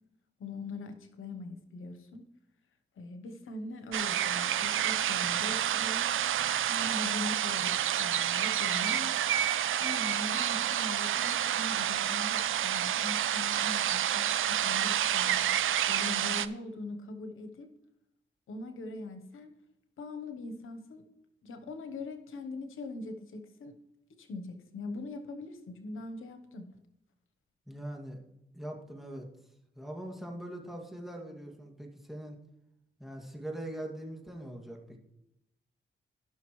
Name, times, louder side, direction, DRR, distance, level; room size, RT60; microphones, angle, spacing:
voice 1, 0.4-2.3 3.0-6.1 6.7-9.2 9.8-15.5 15.9-17.7 18.5-19.5 20.0-21.0 21.4-23.8 24.1-26.7, left 2 dB, 90° left, 7 dB, 1.0 m, -41 dB
sound 1, 3.9-16.5, right 10 dB, 80° right, 0.5 m, -29 dB
voice 2, 27.7-28.2 28.5-29.3 29.8-32.4 33.0-35.0, right 1 dB, ahead, 0 dB, 2.2 m, -42 dB
15.5 x 5.9 x 3.1 m, 0.83 s
cardioid pair, 55°, 21 cm